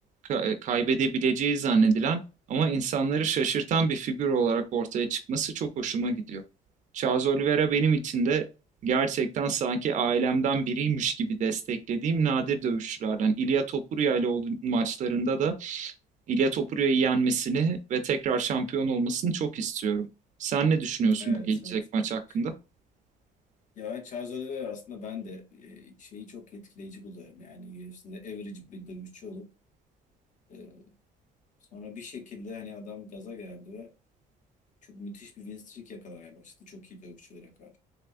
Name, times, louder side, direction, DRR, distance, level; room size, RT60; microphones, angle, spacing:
voice 1, 0.3-2.2 2.5-6.4 6.9-8.4 8.8-15.9 16.3-20.1 20.4-22.5, right 5 dB, 45° right, 0.5 m, -26 dB
voice 2, 21.2-21.8 22.3-22.4 23.8-29.5 30.5-30.9 31.7-33.9 34.9-37.8, left 4 dB, 50° left, 1.0 m, -41 dB
3.4 x 2.8 x 2.5 m
cardioid pair, 110°, 17 cm